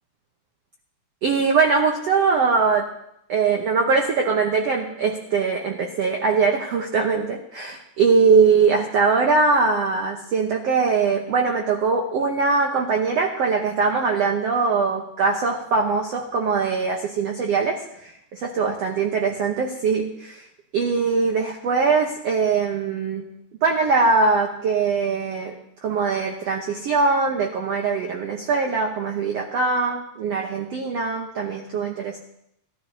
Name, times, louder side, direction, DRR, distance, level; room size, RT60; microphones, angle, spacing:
voice 1, 1.2-2.9 3.3-18.1 18.6-20.4 20.7-23.2 23.6-25.5 25.8-32.2, right 4 dB, 80° right, 1 dB, 1.4 m, -21 dB
18.5 x 12.5 x 2.8 m, 0.76 s
omnidirectional pair, 4.3 m